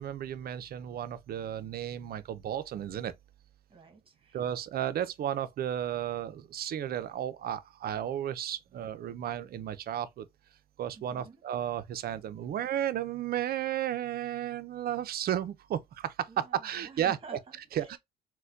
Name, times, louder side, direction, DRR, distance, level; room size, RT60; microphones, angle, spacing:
voice 1, 0.0-3.1 4.3-10.3 10.8-17.2 17.7-18.0, right 10 dB, 50° right, 0.5 m, -33 dB
voice 2, 3.7-4.4 10.9-11.4 16.3-18.0, right 4 dB, 25° right, 1.2 m, -50 dB
4.0 x 2.2 x 2.5 m
hypercardioid pair, 65°, 20 cm